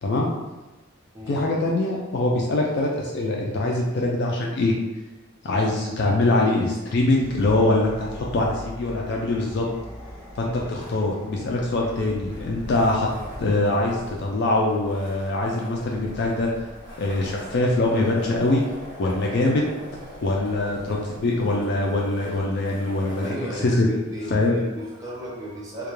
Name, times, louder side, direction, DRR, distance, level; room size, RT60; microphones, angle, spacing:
voice 1, 1.3-4.7 5.4-9.6 10.4-13.1 13.4-16.5 17.0-18.6 19.0-19.6 20.2-23.4 23.6-23.9 24.3-24.6, left 2 dB, 50° left, -2 dB, 0.3 m, -23 dB
voice 2, 5.4-5.8 23.2-25.9, equal, 15° right, -6 dB, 0.5 m, -35 dB
sound 1, 7.0-13.7, equal, 5° left, 1.0 m, -41 dB
sound 2, 10.6-23.3, equal, 55° right, 1.1 m, -42 dB
2.2 x 2.1 x 3.0 m, 1.1 s
head